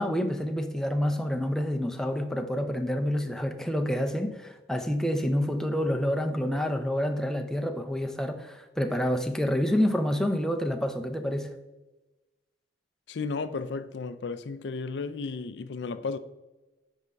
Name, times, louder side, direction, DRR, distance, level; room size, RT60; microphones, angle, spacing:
voice 1, 0.0-11.5, equal, 5° left, 0.5 m, -28 dB
voice 2, 13.1-16.2, left 4 dB, 75° left, 0.4 m, -34 dB
9.7 x 3.6 x 5.2 m
head